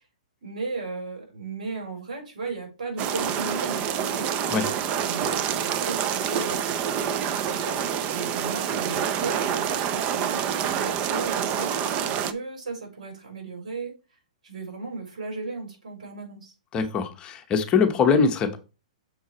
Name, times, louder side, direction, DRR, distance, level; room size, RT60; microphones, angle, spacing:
voice 1, 0.4-4.3 5.0-6.6 7.3-14.0 14.4-16.5, right 3 dB, 75° right, 4.3 m, -36 dB
sound 1, 3.0-12.3, right 8 dB, 30° right, 0.6 m, -27 dB
voice 2, 16.7-18.6, left 5 dB, 25° left, 1.0 m, -22 dB
6.7 x 4.6 x 4.2 m
hypercardioid pair, 135°, 4 cm